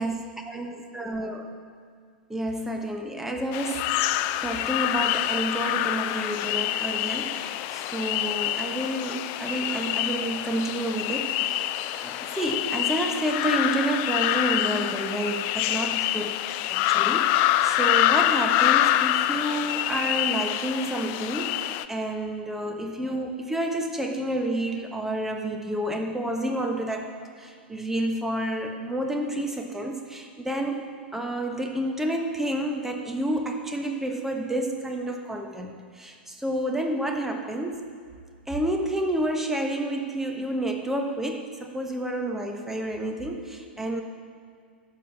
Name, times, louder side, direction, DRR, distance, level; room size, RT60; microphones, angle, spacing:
voice 1, 0.5-1.4 2.3-3.9 4.4-16.4 16.7-37.8 38.5-44.0, right 1 dB, 5° right, 3 dB, 1.2 m, -30 dB
sound 1, 3.5-21.8, left 14 dB, 40° left, 0.4 m, -26 dB
12.5 x 5.2 x 6.8 m, 2.1 s
figure-of-eight pair, 95°, 5 cm